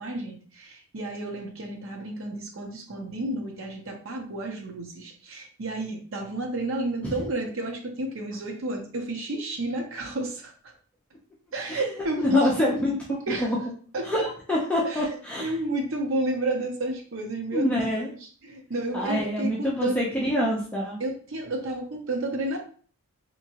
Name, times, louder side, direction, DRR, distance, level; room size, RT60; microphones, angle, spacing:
voice 1, 0.0-10.5 11.5-12.5 13.1-13.5 13.9-14.3 14.8-20.0 21.0-22.6, right 1 dB, 60° right, 1 dB, 0.7 m, -31 dB
voice 2, 12.2-13.0 13.4-13.6 14.0-15.5 17.5-18.1 18.9-21.0, equal, 5° left, -5 dB, 0.6 m, -26 dB
3.5 x 2.9 x 2.8 m, 0.43 s
head